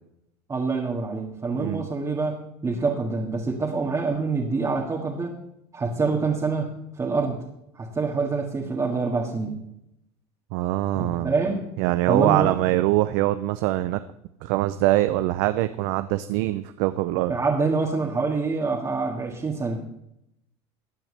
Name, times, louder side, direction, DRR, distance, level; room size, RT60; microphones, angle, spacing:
voice 1, 0.5-2.4 2.6-5.4 5.7-7.4 7.8-9.6 11.0-11.7 12.1-12.6 17.3-19.8, right 4 dB, 25° right, -2 dB, 1.9 m, -26 dB
voice 2, 10.5-11.3 11.8-14.0 14.4-17.4, right 16 dB, 70° right, 12 dB, 0.5 m, -23 dB
15.5 x 9.0 x 3.3 m, 0.80 s
supercardioid pair, 95°, 14 cm